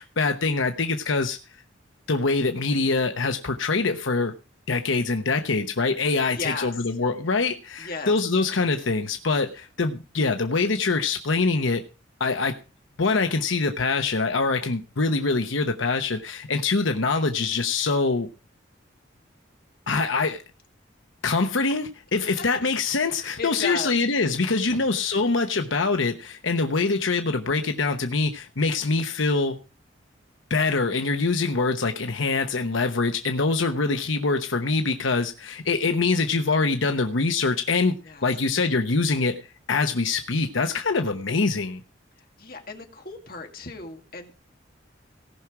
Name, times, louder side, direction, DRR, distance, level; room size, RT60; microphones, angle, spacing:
voice 1, 0.0-1.4 2.1-4.3 4.7-11.8 12.2-12.6 13.0-18.3 19.9-20.4 21.2-29.6 30.5-37.9 38.2-39.4 39.7-41.8, left 3 dB, 80° left, 6 dB, 1.0 m, -24 dB
voice 2, 6.3-6.7 7.8-8.1 23.1-24.0 24.7-24.8 38.0-38.2 42.4-44.3, left 4 dB, 45° left, 3 dB, 2.1 m, -35 dB
18.0 x 6.0 x 4.9 m, 0.33 s
head